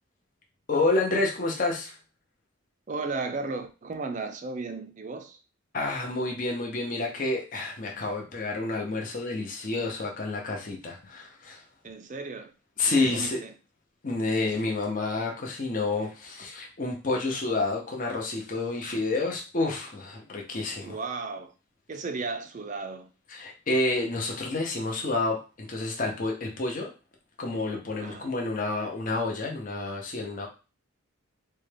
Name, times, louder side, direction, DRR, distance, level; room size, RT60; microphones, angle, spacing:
voice 1, 0.7-2.0 5.7-11.6 12.8-13.4 14.0-21.0 23.3-26.9 27.4-30.5, left 2 dB, 40° left, 0.6 m, -29 dB
voice 2, 2.9-5.4 11.8-12.5 12.9-13.5 20.8-21.5 21.9-23.1 28.0-28.3, right 3 dB, 35° right, 0.4 m, -35 dB
3.9 x 2.2 x 3.2 m
head